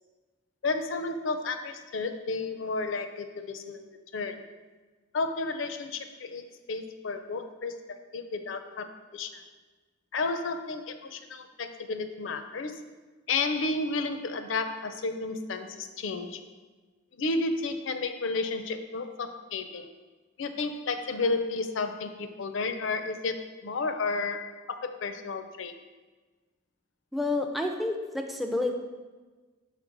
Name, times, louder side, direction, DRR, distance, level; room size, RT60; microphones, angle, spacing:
voice 1, 0.6-4.5 5.1-9.4 10.1-12.9 13.3-16.4 17.2-19.9 20.4-25.7, left 3 dB, 65° left, 8 dB, 0.5 m, -32 dB
voice 2, 27.1-28.8, left 2 dB, ahead, 4 dB, 0.3 m, -29 dB
5.9 x 4.3 x 3.9 m, 1.3 s
head